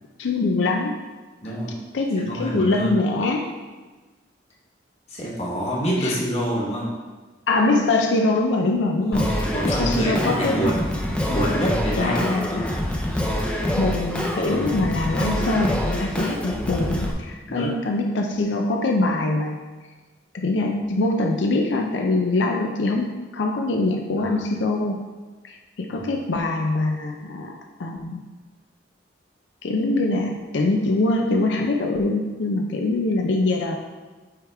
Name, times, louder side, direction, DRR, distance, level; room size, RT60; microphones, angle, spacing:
voice 1, 0.2-0.9 1.4-1.5 1.9-3.5 6.0-6.1 7.5-10.6 12.0-12.7 13.7-19.6 20.3-25.0 25.4-28.2 29.6-33.8, left 2 dB, 75° left, 2 dB, 0.5 m, -23 dB
voice 2, 1.4-1.7 2.3-3.0 5.1-6.9 9.1-10.8 11.3-12.2 14.2-14.5 17.5-17.7 24.2-24.4 25.9-26.1, equal, 35° left, -5 dB, 1.4 m, -26 dB
Singing, 9.1-17.1, left 1 dB, 5° left, 0.5 m, -26 dB
9.1 x 3.5 x 3.4 m, 1.3 s
head